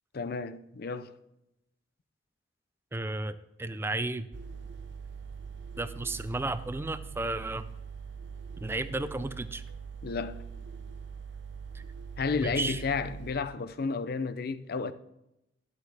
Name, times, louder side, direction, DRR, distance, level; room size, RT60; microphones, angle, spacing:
voice 1, 0.1-1.2 10.0-10.4 12.2-14.9, left 4 dB, 55° left, 0.5 m, -32 dB
voice 2, 2.9-4.3 5.8-7.7 8.6-9.6 11.7-11.8 12.4-12.8, right 2 dB, 15° right, 0.4 m, -33 dB
sound 1, 4.3-13.3, right 6 dB, 70° right, 0.8 m, -43 dB
12.5 x 8.0 x 3.4 m
head